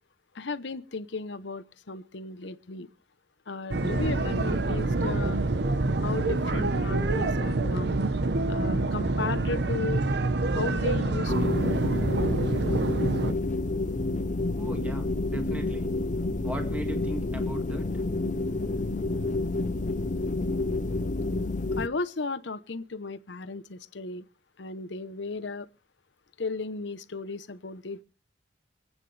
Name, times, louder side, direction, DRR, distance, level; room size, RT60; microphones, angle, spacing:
voice 1, 0.3-2.9 3.5-5.4 6.0-8.0 8.5-10.0 10.5-11.8 21.8-24.2 24.6-25.7 26.4-28.0, left 3 dB, 70° left, 0.9 m, -35 dB
sound 1, 3.7-13.3, right 2 dB, 60° right, 0.9 m, -26 dB
sound 2, 11.3-21.9, left 2 dB, 40° left, 0.7 m, -29 dB
voice 2, 14.6-15.9 16.4-17.9, right 1 dB, 10° right, 2.1 m, -37 dB
27.0 x 9.1 x 3.3 m
head